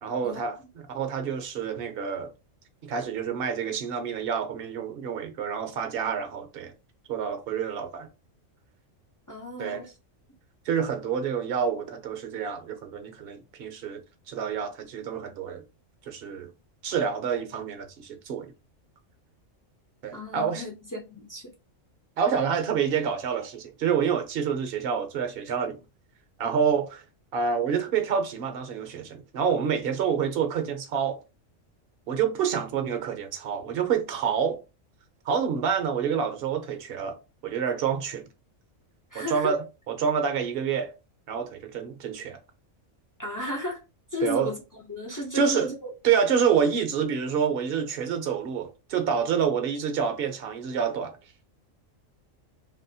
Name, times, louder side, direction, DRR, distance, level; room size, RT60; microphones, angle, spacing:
voice 1, 0.0-2.3 2.8-6.7 7.1-8.1 9.6-9.8 10.7-14.0 14.3-15.6 16.1-16.5 16.8-18.5 20.0-20.6 22.2-25.8 26.4-27.0 27.3-31.2 32.1-34.6 35.2-37.2 37.4-38.3 39.1-40.9 41.3-42.4 44.2-44.5 45.3-45.7 46.0-51.2, right 7 dB, 55° right, 0.8 m, -28 dB
voice 2, 9.3-9.9 20.1-21.5 39.1-39.5 43.2-43.8 44.1-45.9, left 1 dB, 25° left, 0.4 m, -33 dB
2.9 x 2.7 x 2.7 m
omnidirectional pair, 1.3 m